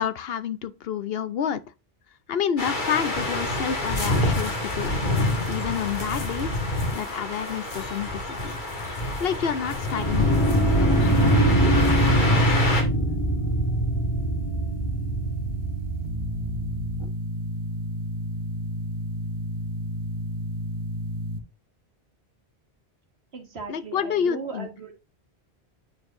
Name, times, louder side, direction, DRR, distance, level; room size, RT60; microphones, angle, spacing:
voice 1, 0.0-1.6 2.3-4.9 5.5-8.6 9.2-12.6 23.7-24.7, left 8 dB, 70° left, 0.9 m, -29 dB
sound 1, 2.6-12.8, left 1 dB, 50° left, 1.9 m, -27 dB
sound 2, 9.9-17.0, right 1 dB, 30° left, 1.2 m, -23 dB
sound 3, 10.7-21.4, right 3 dB, 50° right, 1.1 m, -32 dB
voice 2, 23.3-24.9, right 4 dB, 80° right, 2.0 m, -37 dB
9.4 x 4.6 x 2.6 m
omnidirectional pair, 1.1 m